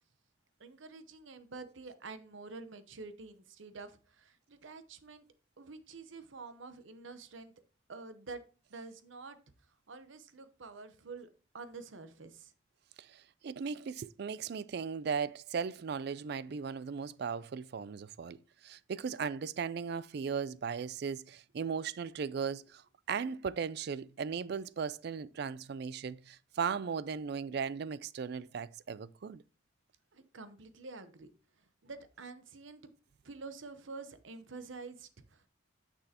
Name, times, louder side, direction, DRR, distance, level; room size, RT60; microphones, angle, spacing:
voice 1, 0.6-5.2 5.6-7.5 7.9-8.4 8.7-9.4 9.9-11.3 11.5-12.5 30.1-31.3 31.6-32.9 33.2-35.5, right 4 dB, 70° right, 0.9 m, -48 dB
voice 2, 13.0-22.8 23.1-29.4, right 6 dB, 55° right, 0.3 m, -37 dB
9.7 x 6.2 x 2.9 m
head